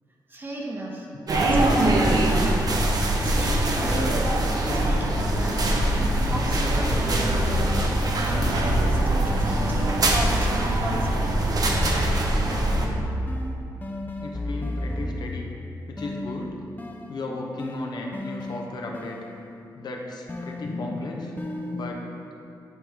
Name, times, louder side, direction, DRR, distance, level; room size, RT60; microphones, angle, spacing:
voice 1, 0.3-1.1 1.4-2.5 3.2-4.2 4.7-5.8 6.2-7.7 8.3-11.2, right 1 dB, 25° right, -1 dB, 1.0 m, -35 dB
sound 1, 1.3-12.9, right 1 dB, 55° right, 0.8 m, -23 dB
sound 2, 3.2-4.3 4.6-11.3 11.6-15.6 16.0-19.7 20.3-21.9, left 1 dB, 25° left, 0.5 m, -33 dB
voice 2, 14.2-15.5 15.9-16.6 17.1-19.2 19.7-21.3 21.7-22.1, left 2 dB, 65° left, 0 dB, 0.8 m, -35 dB
8.2 x 4.5 x 3.6 m, 2.6 s
cardioid pair, 95°, 8 cm